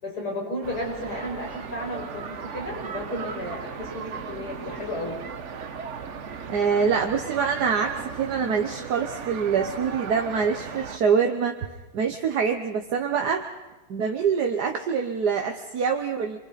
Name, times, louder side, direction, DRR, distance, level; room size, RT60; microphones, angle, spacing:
voice 1, 0.0-5.2, left 1 dB, 65° left, -2 dB, 6.4 m, -33 dB
sound 1, 0.6-11.0, right 6 dB, 50° right, 1.2 m, -37 dB
voice 2, 6.5-11.6 11.9-13.4 13.9-16.4, right 6 dB, 70° right, 3 dB, 1.7 m, -25 dB
28.0 x 24.5 x 4.2 m, 1.2 s
omnidirectional pair, 1.8 m